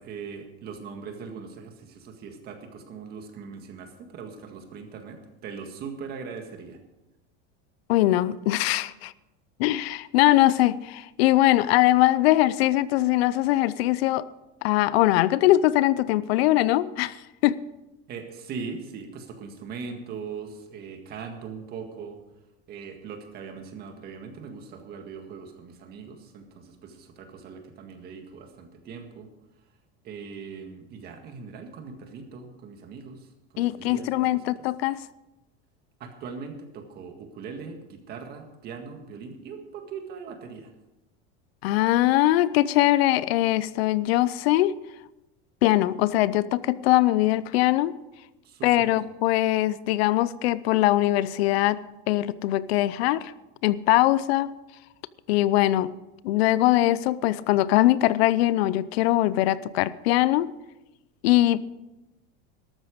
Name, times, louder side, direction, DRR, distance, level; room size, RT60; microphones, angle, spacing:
voice 1, 0.0-6.8 18.1-22.2 22.7-29.3 30.0-33.3 33.5-34.5 36.0-40.7 48.4-49.0, right 5 dB, 30° right, 5 dB, 1.8 m, -40 dB
voice 2, 7.9-9.1 9.6-14.3 14.6-17.6 33.6-35.0 41.6-44.8 45.6-48.0 48.6-53.3 53.6-54.5 55.3-55.9 56.2-60.5 61.2-61.6, left 15 dB, 85° left, 18 dB, 0.7 m, -22 dB
13.5 x 12.5 x 5.1 m, 0.98 s
cardioid pair, 170°, 30 cm